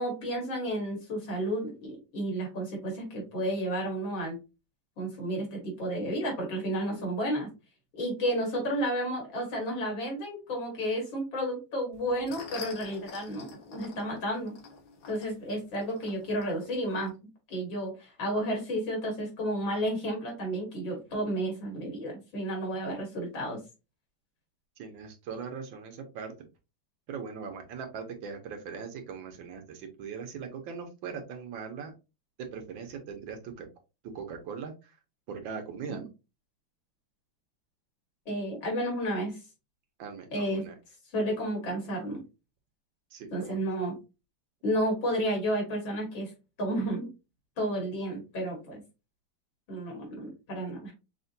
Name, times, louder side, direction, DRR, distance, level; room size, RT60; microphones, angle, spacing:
voice 1, 0.0-4.4 5.0-7.5 7.9-14.5 15.1-17.1 17.5-23.6 35.9-36.1 38.3-39.3 40.3-40.6 41.1-42.2 43.3-43.9 44.6-46.3 46.6-47.1 47.6-48.8 49.7-50.9, equal, 85° left, 0 dB, 2.7 m, -32 dB
sound 1, 11.9-17.1, left 5 dB, 60° left, 1.4 m, -48 dB
voice 2, 24.8-26.3 27.1-31.9 32.4-33.7 34.1-34.9 35.3-36.1 40.0-40.7 43.1-43.6, right 6 dB, 85° right, 4 dB, 1.6 m, -40 dB
6.1 x 2.2 x 2.6 m, 0.28 s
omnidirectional pair, 2.1 m